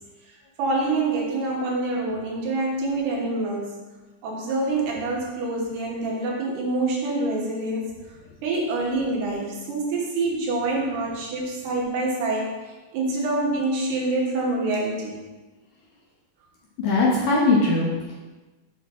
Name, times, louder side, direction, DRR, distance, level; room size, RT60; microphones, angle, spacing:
voice 1, 0.6-3.8 4.2-8.0 8.4-12.5 12.9-15.2, right 2 dB, 80° right, -2 dB, 3.4 m, -26 dB
voice 2, 16.8-18.1, left 3 dB, 70° left, -5 dB, 2.2 m, -20 dB
7.1 x 6.5 x 3.7 m, 1.2 s
omnidirectional pair, 4.7 m